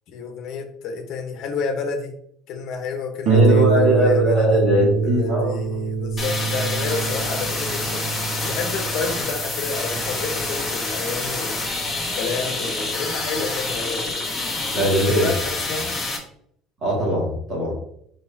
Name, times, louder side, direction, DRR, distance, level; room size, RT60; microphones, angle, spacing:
voice 1, 0.1-2.1 2.5-4.6 5.0-8.0 8.4-11.6 12.1-14.1 15.0-15.9, left 4 dB, 45° left, 5 dB, 1.2 m, -30 dB
voice 2, 3.3-5.8 14.7-15.3 16.8-17.7, equal, 25° right, -5 dB, 2.3 m, -20 dB
Harp, 3.3-12.4 13.3-13.4 13.8-13.9, right 5 dB, 40° right, 0.9 m, -24 dB
sound 1, 6.2-16.2, left 2 dB, 10° left, 1.4 m, -27 dB
6.5 x 5.5 x 2.8 m, 0.68 s
cardioid pair, 175°, 0 cm